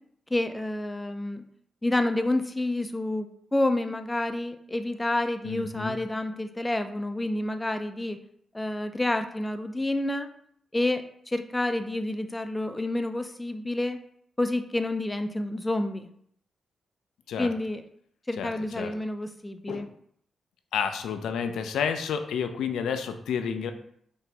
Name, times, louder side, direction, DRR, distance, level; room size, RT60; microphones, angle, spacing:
voice 1, 0.3-1.5 1.8-8.2 8.5-10.3 10.7-14.0 14.4-16.1 17.4-17.8 18.3-19.9, left 1 dB, 15° left, 8 dB, 0.4 m, -29 dB
voice 2, 5.4-6.0 17.3-17.5 18.4-18.5 18.8-18.9 19.7-19.9 20.7-23.7, left 7 dB, 90° left, 8 dB, 0.4 m, -30 dB
4.8 x 2.6 x 3.3 m, 0.66 s
cardioid pair, 75°, 0 cm